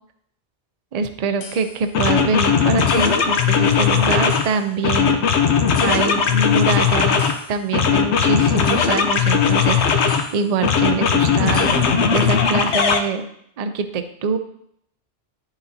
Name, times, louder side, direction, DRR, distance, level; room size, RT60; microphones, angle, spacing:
voice 1, 0.9-5.2 5.8-11.7 12.1-13.3 13.6-14.4, right 4 dB, 45° right, 8 dB, 0.5 m, -24 dB
sound 1, 1.4-1.6 1.9-4.5 4.8-7.4 7.7-10.3 10.6-13.0, left 6 dB, 90° left, 1.0 m, -18 dB
11.5 x 4.1 x 2.7 m, 0.72 s
omnidirectional pair, 1.1 m